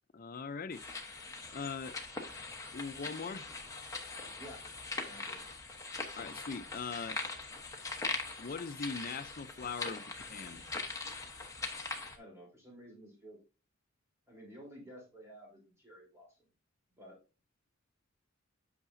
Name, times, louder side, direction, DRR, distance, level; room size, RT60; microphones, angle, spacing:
voice 1, 0.1-0.8 1.5-2.0 2.7-3.5 6.2-7.2 8.4-10.6, left 5 dB, 40° left, 0.5 m, -41 dB
sound 1, 0.7-12.2, left 3 dB, 15° left, 1.0 m, -41 dB
voice 2, 4.4-4.7 5.0-5.4 12.1-13.4 14.3-16.4 17.0-17.2, equal, 15° right, 3.4 m, -52 dB
8.5 x 5.7 x 2.6 m
head